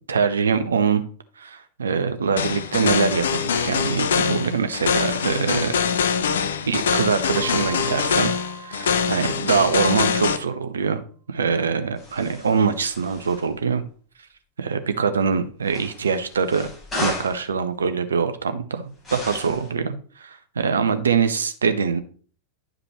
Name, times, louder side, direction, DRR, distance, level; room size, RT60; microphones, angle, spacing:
voice 1, 0.1-1.0 1.4-5.7 6.6-8.3 8.6-11.0 11.3-13.8 14.6-16.7 17.0-22.0, right 5 dB, 70° right, 10 dB, 0.7 m, -23 dB
sound 1, 2.4-10.4, left 6 dB, 65° left, 0.6 m, -23 dB
Keyboard (musical), 7.3-10.1, right 8 dB, 35° right, 1.4 m, -40 dB
sound 2, 12.0-13.5 15.6-17.4 19.0-19.7, left 2 dB, 15° left, 4.2 m, -34 dB
10.0 x 5.1 x 3.1 m, 0.43 s
figure-of-eight pair, 90°, 0 cm